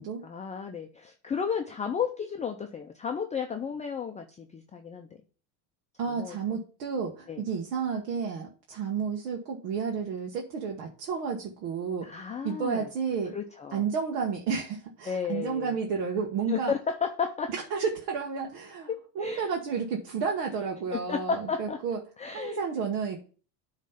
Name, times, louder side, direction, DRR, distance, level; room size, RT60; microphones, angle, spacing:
voice 1, 0.2-5.1 6.1-6.4 7.3-7.4 12.0-12.9 13.3-13.8 15.1-15.7 16.5-17.5 19.2-19.5 20.9-21.8 22.2-22.6, left 6 dB, 15° left, 4 dB, 0.5 m, -33 dB
voice 2, 6.0-13.3 13.7-16.7 17.7-22.0 22.3-23.2, right 6 dB, 75° right, 0 dB, 1.4 m, -31 dB
9.0 x 3.2 x 5.6 m, 0.39 s
supercardioid pair, 115°, 46 cm